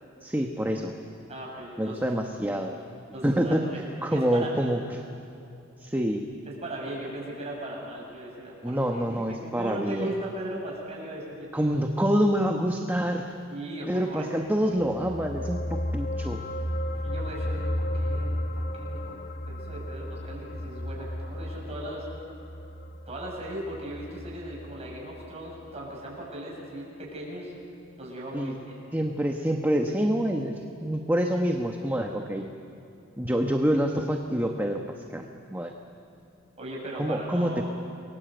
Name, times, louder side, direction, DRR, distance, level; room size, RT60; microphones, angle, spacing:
voice 1, 0.2-0.9 1.8-2.8 3.2-3.6 4.0-5.0 5.8-6.3 8.6-10.1 11.5-13.3 13.9-16.4 28.3-28.5 28.9-32.5 33.2-35.7 37.0-37.6, equal, 10° right, 3 dB, 1.1 m, -27 dB
voice 2, 1.3-2.0 3.1-3.8 4.1-4.5 6.5-8.8 9.1-11.5 13.5-14.3 17.0-19.2 19.4-22.1 23.1-27.5 28.0-28.8 36.6-37.6, right 1 dB, 30° right, -3 dB, 7.8 m, -38 dB
sound 1, 14.7-25.3 25.6-25.8, left 1 dB, 55° left, 1.4 m, -33 dB
29.0 x 22.5 x 8.0 m, 2.7 s
head